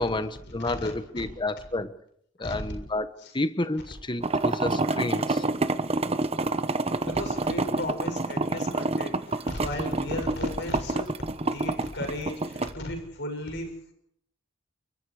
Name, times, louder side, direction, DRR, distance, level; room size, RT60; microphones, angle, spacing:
voice 1, 0.0-1.9 2.4-5.4, left 2 dB, 25° left, 1.3 m, -30 dB
voice 2, 0.6-1.2 2.4-2.6 3.2-3.3 7.0-11.1 11.4-13.7, left 1 dB, 55° left, 7.2 m, -35 dB
sound 1, 4.2-12.7, right 2 dB, 30° right, 1.0 m, -27 dB
29.0 x 25.0 x 5.0 m
head